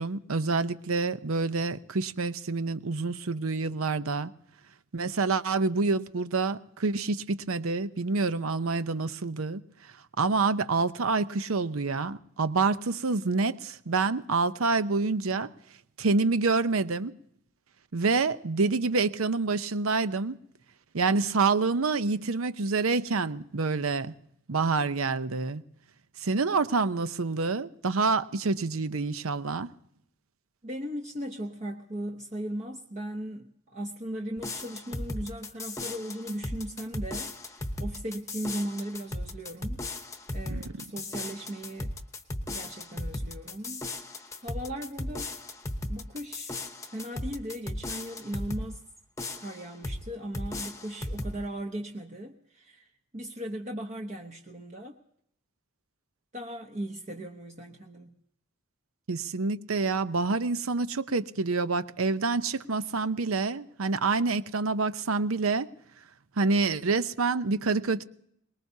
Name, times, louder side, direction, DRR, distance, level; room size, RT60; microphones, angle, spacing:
voice 1, 0.0-4.3 4.9-9.6 10.2-15.5 16.0-17.1 17.9-20.4 20.9-24.1 24.5-25.6 26.2-29.7 40.5-40.6 59.1-65.7 66.4-68.0, right 4 dB, 85° right, 0.7 m, -27 dB
voice 2, 30.6-39.9 40.3-41.9 42.5-45.3 45.9-46.6 46.9-48.8 49.4-55.0 56.3-58.2, equal, 35° right, 0.9 m, -38 dB
sound 1, 34.4-48.7 49.2-50.0 50.3-51.4, left 1 dB, 15° left, 0.9 m, -36 dB
23.5 x 20.5 x 2.8 m
head